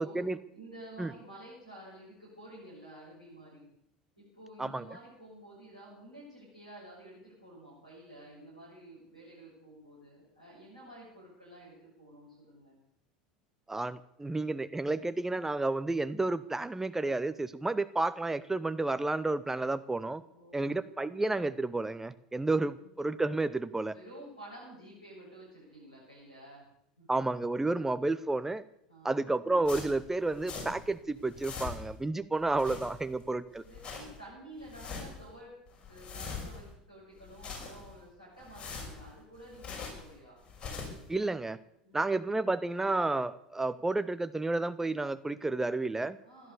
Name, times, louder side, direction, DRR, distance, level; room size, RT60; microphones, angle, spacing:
voice 1, 0.0-0.4 1.0-1.1 4.6-4.8 13.7-20.2 20.5-23.9 27.1-28.6 29.0-33.6 41.1-41.6 41.9-46.2, right 2 dB, 10° right, 13 dB, 0.7 m, -31 dB
voice 2, 0.5-3.7 4.2-12.7 20.3-20.8 22.7-22.9 23.9-26.6 27.0-27.1 28.9-29.2 33.6-35.5 35.9-40.4 41.8-42.3 46.2-46.5, right 1 dB, 90° right, -8 dB, 6.7 m, -51 dB
sound 1, 29.6-30.9 31.2-32.0 32.4-33.2 33.6-34.2 34.6-35.3 35.7-36.7 37.2-38.0 38.4-40.1 40.4-41.1, left 4 dB, 25° left, 6.2 m, -43 dB
16.5 x 12.0 x 6.9 m, 0.76 s
figure-of-eight pair, 70°, 4 cm